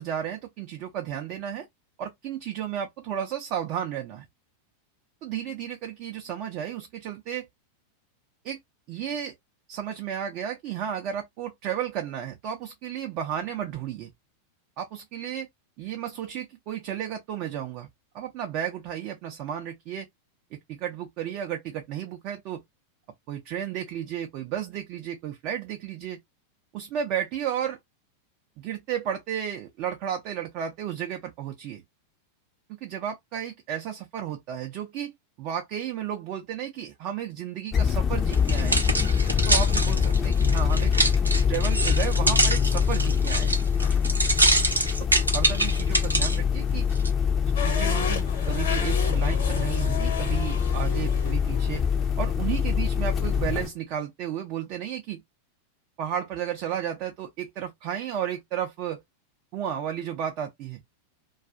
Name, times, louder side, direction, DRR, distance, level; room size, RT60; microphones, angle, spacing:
voice 1, 0.0-1.7 2.0-4.3 5.2-7.5 8.4-8.6 8.9-9.3 9.7-14.1 14.8-15.5 15.8-17.9 18.1-20.1 20.7-22.6 23.3-26.2 26.7-27.8 28.6-31.8 32.8-35.1 35.4-38.8 39.5-40.9 41.5-43.6 45.3-46.8 47.6-51.8 52.2-55.2 56.0-59.0 59.5-60.8, right 9 dB, 40° right, 0.5 m, -33 dB
sound 1, 37.7-53.7, left 7 dB, 25° left, 0.5 m, -24 dB
sound 2, 38.3-46.4 47.0-47.1, right 2 dB, 85° right, 0.6 m, -25 dB
Drift race car Donut, 47.6-53.6, left 5 dB, 60° left, 1.0 m, -35 dB
2.3 x 2.3 x 2.4 m
figure-of-eight pair, 90°, 0 cm